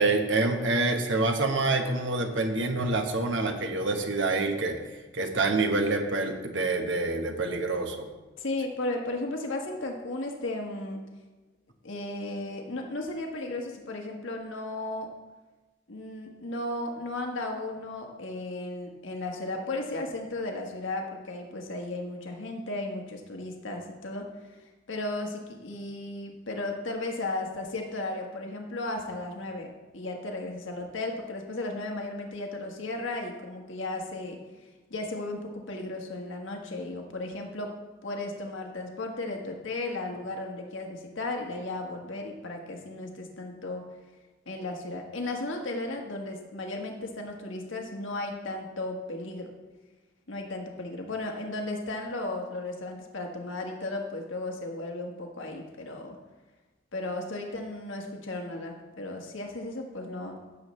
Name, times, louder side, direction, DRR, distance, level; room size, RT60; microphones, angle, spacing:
voice 1, 0.0-4.8 5.1-8.1, right 3 dB, 70° right, 4 dB, 1.2 m, -26 dB
voice 2, 8.4-11.0 11.8-15.1 15.9-24.3 24.9-34.4 34.9-37.7 38.0-43.8 44.5-49.5 50.3-56.2 56.9-60.3, left 2 dB, 80° left, 2 dB, 1.4 m, -35 dB
15.5 x 7.1 x 3.2 m, 1.2 s
head